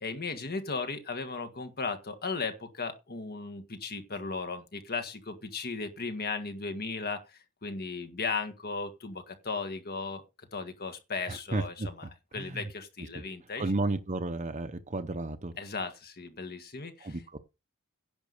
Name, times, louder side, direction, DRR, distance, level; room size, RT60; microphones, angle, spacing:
voice 1, 0.0-7.2 7.6-10.2 10.5-12.1 12.3-13.7 15.6-16.9, left 4 dB, 45° left, 1.8 m, -36 dB
voice 2, 11.3-11.9 12.3-12.7 13.1-13.2 13.6-15.5 17.0-17.2, right 2 dB, 30° right, 0.8 m, -32 dB
10.5 x 5.4 x 6.6 m
head